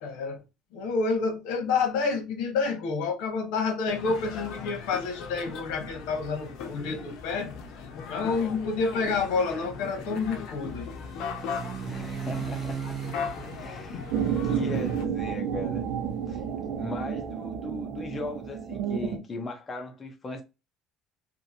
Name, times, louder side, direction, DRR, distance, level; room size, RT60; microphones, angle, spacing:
voice 1, 0.0-0.4 0.7-7.5 8.1-10.9, left 4 dB, 85° left, 0.9 m, -29 dB
sound 1, 3.9-15.0, left 6 dB, 60° left, 0.6 m, -38 dB
sound 2, 9.4-17.2, right 8 dB, 30° right, 0.5 m, -40 dB
voice 2, 11.9-12.8 13.4-14.1 14.4-15.8 16.3-16.4 16.8-20.4, left 2 dB, 20° left, 0.6 m, -37 dB
sound 3, 14.1-19.2, right 8 dB, 85° right, 0.5 m, -30 dB
2.8 x 2.5 x 2.6 m
cardioid pair, 155°, 0 cm